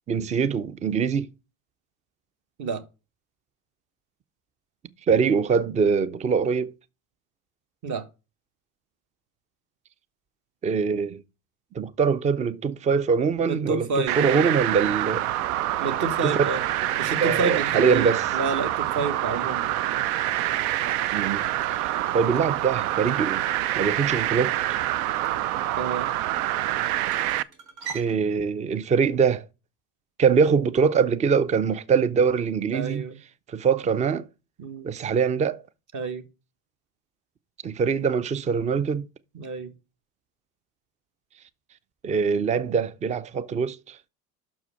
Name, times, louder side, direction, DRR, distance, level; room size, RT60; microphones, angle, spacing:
voice 1, 0.1-1.3 5.1-6.7 10.6-11.2 11.7-15.3 16.2-16.3 17.2-18.2 21.1-21.9 22.1-23.5 23.8-24.5 27.9-29.5 30.2-33.0 33.5-34.3 34.8-35.6 37.6-39.1 42.0-44.0, right 6 dB, 15° right, 0.4 m, -23 dB
voice 2, 13.4-14.6 15.8-16.6 17.0-19.7 25.8-26.1 32.7-33.2 34.6-34.9 35.9-36.2 39.3-39.7, right 4 dB, 40° right, 1.5 m, -29 dB
sound 1, 14.1-27.4, right 14 dB, 70° right, 0.6 m, -26 dB
sound 2, 20.6-28.2, right 6 dB, 90° right, 1.8 m, -45 dB
6.2 x 4.7 x 5.6 m
hypercardioid pair, 90°, 45 cm